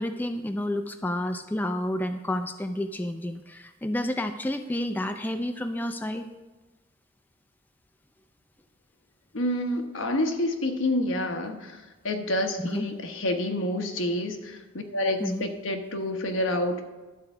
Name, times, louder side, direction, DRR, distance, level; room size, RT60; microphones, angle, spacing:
voice 1, 0.0-6.3 12.6-12.9 15.2-15.5, left 1 dB, 10° left, 7 dB, 0.3 m, -30 dB
voice 2, 9.3-11.8 12.0-14.6 14.9-16.8, left 1 dB, 90° left, 5 dB, 1.1 m, -28 dB
11.5 x 4.6 x 7.0 m, 1.2 s
head